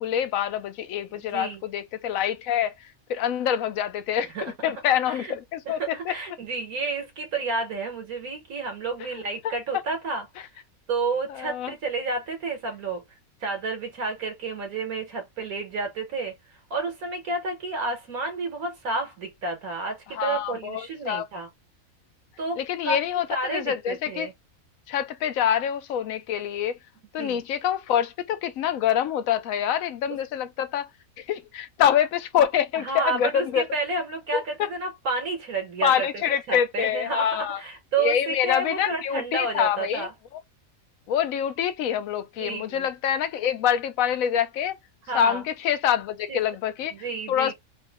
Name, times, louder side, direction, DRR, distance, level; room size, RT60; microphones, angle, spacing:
voice 1, 0.0-2.7 3.1-6.2 9.0-9.1 9.7-9.8 11.3-11.7 20.1-21.3 22.6-24.3 24.9-26.8 27.1-30.9 31.2-33.7 34.3-34.7 35.8-37.6 38.0-40.4 41.1-44.8 45.1-46.9 47.3-47.5, left 9 dB, 75° left, 1.0 m, -26 dB
voice 2, 1.1-1.6 4.2-4.5 5.1-5.3 5.7-10.3 10.9-13.0 13.4-16.3 16.7-21.5 22.4-23.0 23.3-24.3 27.2-27.4 30.1-30.2 32.8-36.2 36.5-40.1 42.4-42.9 45.1-45.5 46.3-46.4 46.9-47.5, right 3 dB, 80° right, 1.8 m, -30 dB
3.8 x 2.1 x 3.4 m
omnidirectional pair, 1.5 m